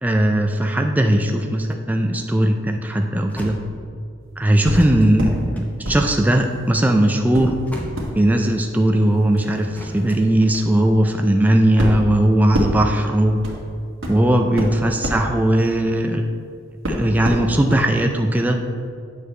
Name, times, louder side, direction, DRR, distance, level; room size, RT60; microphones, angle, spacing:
voice 1, 0.0-3.6 4.4-7.5 8.1-13.4 14.1-16.2 16.9-18.6, right 1 dB, 10° right, 3 dB, 0.3 m, -18 dB
sound 1, 2.4-4.3 4.7-8.7 9.7-11.4 11.9-12.9, equal, 10° left, 0.7 m, -38 dB
sound 2, 4.7-5.4 5.8-6.8 7.3-16.4 16.8-17.9 18.2-18.3, equal, 70° right, 1.5 m, -29 dB
8.9 x 6.6 x 3.2 m, 2.3 s
head